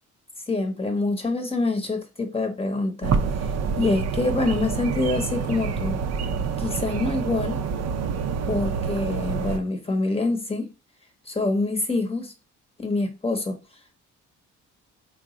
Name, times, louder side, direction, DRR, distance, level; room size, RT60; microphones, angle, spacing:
voice 1, 0.5-6.0 6.6-7.6 8.5-10.7 11.3-12.3 12.8-13.6, left 2 dB, 20° left, 0.8 m, -26 dB
sound 1, 3.0-9.6, right 6 dB, 60° right, 0.5 m, -27 dB
3.5 x 2.0 x 3.7 m
cardioid pair, 90°, 30 cm